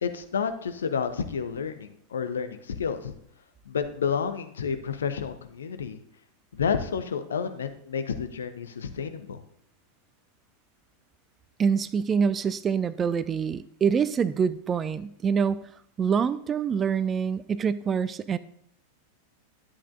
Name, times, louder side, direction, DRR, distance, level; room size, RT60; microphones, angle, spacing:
voice 1, 0.0-3.1 3.7-6.0 6.5-9.4, left 6 dB, 65° left, 9 dB, 0.8 m, -30 dB
voice 2, 11.6-15.7 16.0-18.4, right 6 dB, 20° right, 15 dB, 0.4 m, -25 dB
11.0 x 8.7 x 2.6 m, 0.69 s
figure-of-eight pair, 90°, 0 cm